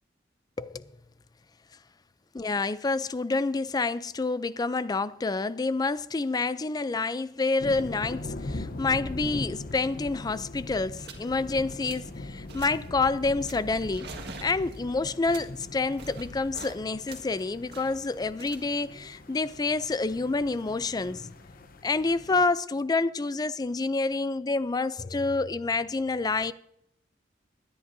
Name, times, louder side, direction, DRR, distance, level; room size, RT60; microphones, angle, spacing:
voice 1, 0.6-0.9 2.3-14.1 14.4-21.3 21.8-26.5, left 3 dB, 20° left, 0.4 m, -28 dB
sound 1, 7.6-22.5, left 2 dB, 50° left, 0.8 m, -41 dB
sound 2, 9.9-10.0 10.2-10.5 11.0-11.3 11.6-12.2 12.5-12.9 13.4-16.8 17.1-20.1, right 4 dB, 60° right, 1.7 m, -47 dB
20.0 x 10.5 x 2.6 m
head